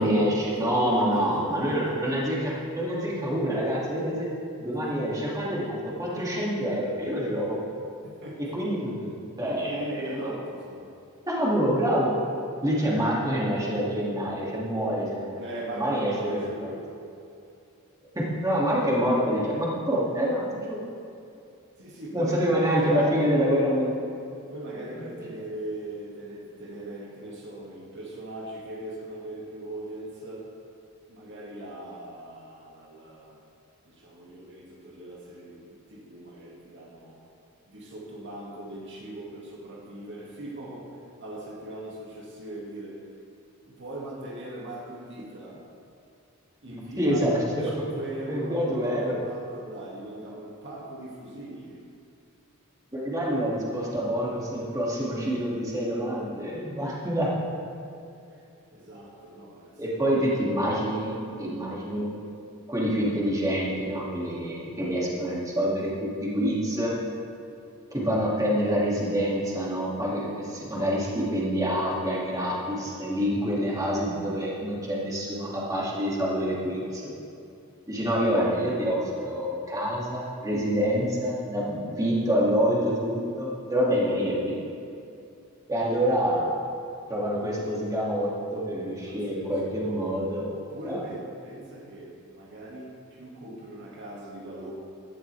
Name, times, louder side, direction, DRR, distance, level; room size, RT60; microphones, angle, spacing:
voice 1, 0.0-4.3 4.6-7.6 8.5-8.9 9.4-10.1 11.3-12.2 12.6-15.4 15.7-16.7 18.1-20.8 22.1-24.0 24.7-25.2 46.7-47.7 48.3-49.1 52.9-57.3 59.8-62.2 62.7-67.0 67.9-77.1 77.9-84.6 85.7-86.6 87.1-90.5 90.8-91.0, equal, 15° right, -6 dB, 2.4 m, -26 dB
voice 2, 0.6-2.1 4.7-5.2 8.0-8.8 9.4-10.9 15.4-16.8 21.8-23.3 24.5-30.5 31.1-33.4 33.9-37.2 37.7-40.9 41.2-43.0 43.7-45.6 46.6-47.3 47.6-51.8 58.7-60.3 72.5-72.9 89.1-89.5 89.8-90.1 90.5-94.7, right 1 dB, 55° right, -3 dB, 2.1 m, -39 dB
16.5 x 12.0 x 3.4 m, 2.6 s
head